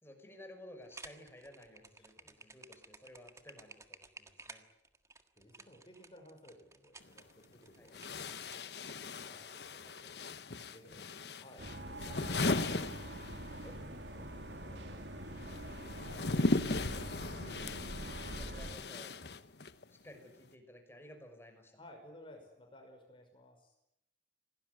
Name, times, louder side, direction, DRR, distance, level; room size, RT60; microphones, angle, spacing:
voice 1, 0.0-4.6 7.8-7.9 16.4-16.5 18.4-19.1 19.9-21.7, left 1 dB, 15° left, 5 dB, 6.0 m, -55 dB
sound 1, 0.8-8.9, right 3 dB, 15° right, 1.6 m, -54 dB
voice 2, 5.4-8.7 9.2-10.1 10.7-11.7 13.6-15.3 21.8-23.8, left 1 dB, 30° left, 3 dB, 5.7 m, -59 dB
sound 2, 7.0-7.1 7.9-13.7 14.0-19.8, left 2 dB, 65° left, 1.2 m, -37 dB
sound 3, 11.6-18.8, right 1 dB, 85° right, 2.9 m, -45 dB
26.5 x 18.5 x 9.7 m, 0.81 s
head